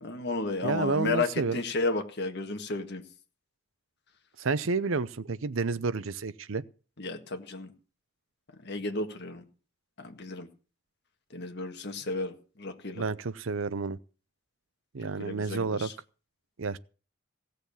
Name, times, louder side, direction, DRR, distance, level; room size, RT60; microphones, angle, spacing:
voice 1, 0.0-3.0 7.0-7.7 8.6-9.4 10.0-10.5 11.3-13.1 15.0-15.9, left 3 dB, 55° left, 1.7 m, -33 dB
voice 2, 0.6-1.6 4.4-6.6 13.0-14.0 14.9-15.9 16.6-16.8, right 4 dB, 65° right, 0.7 m, -30 dB
16.5 x 6.9 x 7.0 m
head